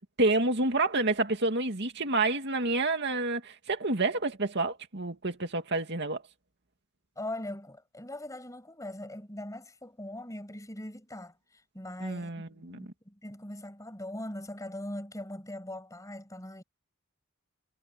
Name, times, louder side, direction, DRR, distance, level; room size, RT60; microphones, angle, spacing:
voice 1, 0.2-6.2 12.0-12.8, right 2 dB, 55° right, 2.3 m, -28 dB
voice 2, 7.2-16.6, left 1 dB, 15° left, 6.7 m, -41 dB
head